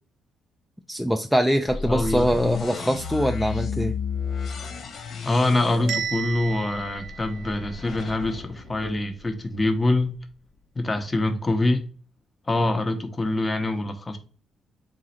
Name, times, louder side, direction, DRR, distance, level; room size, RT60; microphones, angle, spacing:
voice 1, 0.9-3.9, equal, ahead, 0.3 m, -23 dB
sound 1, 1.7-9.6, left 6 dB, 60° left, 0.6 m, -33 dB
voice 2, 1.9-2.3 5.2-10.2 10.8-11.8 12.5-14.2, left 2 dB, 25° left, 0.8 m, -24 dB
Bell, 5.9-7.9, right 7 dB, 75° right, 0.5 m, -33 dB
4.0 x 2.4 x 4.2 m
cardioid pair, 90°, 0 cm